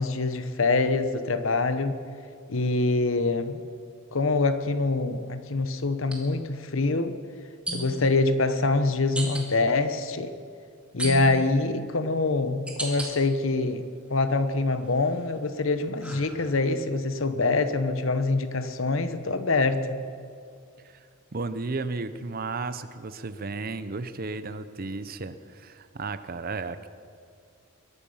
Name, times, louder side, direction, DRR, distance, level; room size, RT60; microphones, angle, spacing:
voice 1, 0.0-2.0 2.5-3.6 4.1-7.2 7.7-10.4 10.9-20.0, left 3 dB, 65° left, 10 dB, 1.0 m, -25 dB
sound 1, 6.1-6.2 7.7-8.1 9.1-9.5 11.0-11.5 12.2-13.1 13.6-14.3 14.8-16.8, right 1 dB, 5° right, 2.1 m, -35 dB
voice 2, 20.8-26.9, right 3 dB, 45° right, 13 dB, 0.7 m, -34 dB
22.0 x 11.5 x 5.6 m, 2.4 s
head